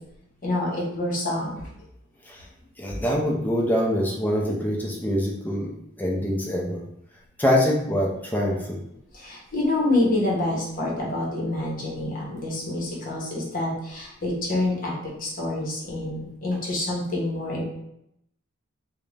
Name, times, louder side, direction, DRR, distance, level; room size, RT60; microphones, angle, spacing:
voice 1, 0.4-1.6 4.4-4.5 9.1-17.6, left 2 dB, 40° left, -4 dB, 0.8 m, -27 dB
voice 2, 2.8-5.7 6.0-6.8 7.4-8.8, equal, 10° left, -2 dB, 0.4 m, -24 dB
2.4 x 2.1 x 3.1 m, 0.78 s
head